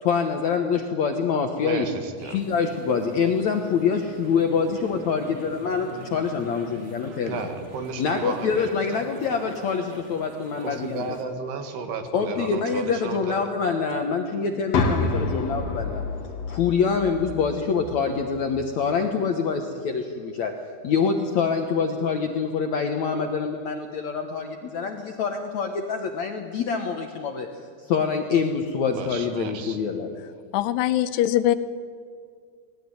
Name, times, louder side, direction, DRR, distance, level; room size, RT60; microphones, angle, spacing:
voice 1, 0.0-1.9 2.3-7.4 8.0-11.0 12.1-16.0 16.5-20.5 20.8-27.5 27.9-30.1, left 5 dB, 70° left, 4 dB, 1.7 m, -25 dB
voice 2, 1.6-2.4 7.3-9.2 10.6-13.4 28.8-29.8, right 4 dB, 75° right, 6 dB, 3.8 m, -34 dB
sound 1, 2.3-11.2, right 1 dB, 25° right, 1.8 m, -44 dB
sound 2, 14.7-18.7, left 3 dB, 50° left, 2.3 m, -28 dB
voice 3, 30.5-31.6, left 13 dB, 85° left, 13 dB, 2.9 m, -22 dB
20.5 x 18.0 x 9.7 m, 2.1 s
omnidirectional pair, 4.8 m